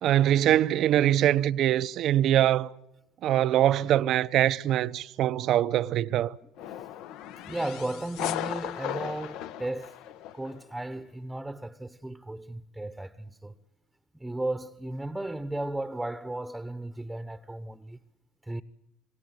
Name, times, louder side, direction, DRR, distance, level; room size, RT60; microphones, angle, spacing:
voice 1, 0.0-2.7 3.2-6.4, right 12 dB, 60° right, 0.8 m, -23 dB
sound 1, 6.6-10.6, left 12 dB, 70° left, 1.2 m, -36 dB
voice 2, 7.5-10.0 10.3-13.5 14.1-18.0 18.4-18.6, right 1 dB, 10° right, 1.0 m, -35 dB
27.5 x 18.5 x 8.0 m
supercardioid pair, 85°, 0 cm